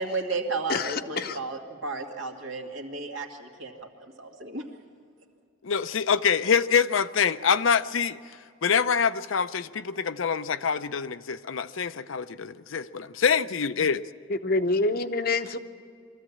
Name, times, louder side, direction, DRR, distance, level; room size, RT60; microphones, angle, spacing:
voice 1, 0.0-3.7 4.0-4.6, right 3 dB, 75° right, 2 dB, 2.3 m, -33 dB
voice 2, 0.7-1.4 14.3-15.6, left 3 dB, 50° left, 10 dB, 0.8 m, -26 dB
voice 3, 5.6-8.2 8.6-14.0, left 6 dB, 80° left, 12 dB, 0.6 m, -25 dB
23.0 x 14.5 x 8.6 m, 2.3 s
head